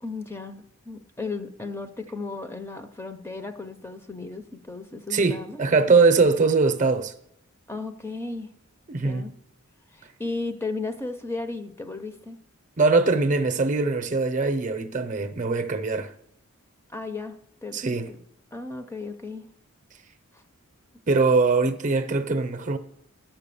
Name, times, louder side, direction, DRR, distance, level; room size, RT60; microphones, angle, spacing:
voice 1, 0.0-5.6 7.7-8.5 9.0-9.3 9.9-12.4 16.9-17.8 18.1-18.2 18.5-19.5 20.3-20.4, left 3 dB, 10° left, 0.5 m, -35 dB
voice 2, 5.1-7.1 8.9-9.2 12.8-16.1 17.7-18.1 21.1-22.8, right 4 dB, 35° right, 0.6 m, -22 dB
11.5 x 5.8 x 6.9 m
head